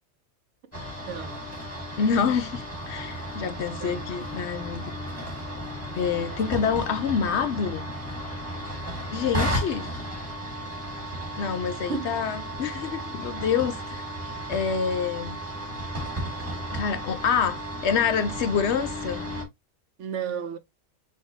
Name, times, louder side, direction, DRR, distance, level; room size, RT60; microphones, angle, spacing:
sound 1, 0.7-19.4, equal, 10° right, 1.7 m, -34 dB
voice 1, 1.1-1.5 3.8-4.1 6.3-6.4 9.8-9.9 11.9-12.2 20.0-20.6, right 6 dB, 65° right, 1.1 m, -33 dB
voice 2, 2.0-4.9 6.0-7.9 9.1-9.9 11.3-14.0 14.5-15.4 16.7-19.3, left 6 dB, 65° left, 0.8 m, -27 dB
7.3 x 2.7 x 2.7 m
omnidirectional pair, 1.4 m